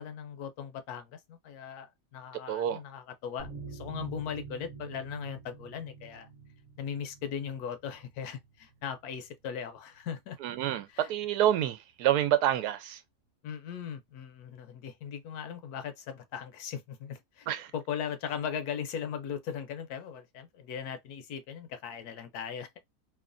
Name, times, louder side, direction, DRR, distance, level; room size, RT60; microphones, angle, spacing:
voice 1, 0.0-6.3 6.8-10.4 10.9-11.1 13.4-17.5 17.7-22.7, left 8 dB, 75° left, 1.1 m, -38 dB
voice 2, 2.5-2.8 10.4-13.0 17.5-17.7, right 11 dB, 85° right, 1.1 m, -28 dB
sound 1, 3.4-10.5 10.7-10.9 11.2-11.3, right 4 dB, 40° right, 0.5 m, -48 dB
3.1 x 2.2 x 2.4 m
omnidirectional pair, 1.7 m